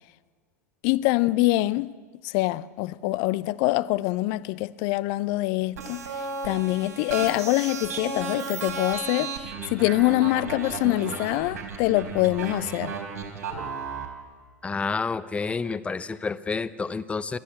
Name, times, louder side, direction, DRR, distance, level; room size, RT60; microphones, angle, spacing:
voice 1, 0.8-1.9 2.2-6.0 6.4-12.9, left 18 dB, 45° left, 0.6 m, -24 dB
sound 1, 5.8-14.1, right 5 dB, 70° right, 4.3 m, -34 dB
voice 2, 14.6-17.4, left 4 dB, 15° left, 0.8 m, -29 dB
30.0 x 13.5 x 8.8 m
figure-of-eight pair, 85°, 9 cm